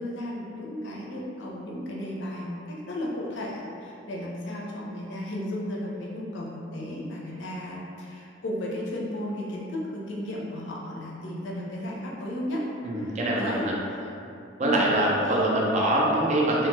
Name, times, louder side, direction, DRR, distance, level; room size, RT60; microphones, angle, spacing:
voice 1, 0.0-12.7 13.0-14.0 14.6-14.9 15.2-15.5, left 1 dB, 65° left, -4 dB, 0.5 m, -34 dB
voice 2, 12.8-13.8 14.6-16.7, right 1 dB, 35° right, -4 dB, 0.4 m, -24 dB
2.8 x 2.2 x 3.0 m, 2.6 s
head